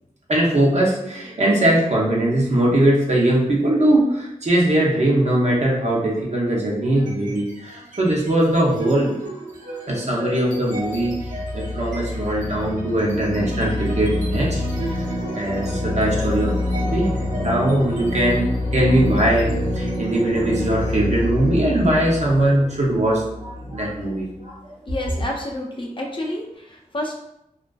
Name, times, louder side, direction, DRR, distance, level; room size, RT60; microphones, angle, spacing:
voice 1, 0.3-9.2 9.9-14.6 14.9-15.0 15.3-18.4 18.7-24.6, right 1 dB, 55° right, -3 dB, 0.6 m, -20 dB
sound 1, 7.0-7.5 7.9-24.5, left 1 dB, 75° right, 1.0 m, -27 dB
voice 2, 24.9-27.1, left 1 dB, 40° left, -1 dB, 0.4 m, -29 dB
2.3 x 2.3 x 2.3 m, 0.80 s
wide cardioid pair, 100°, 14 cm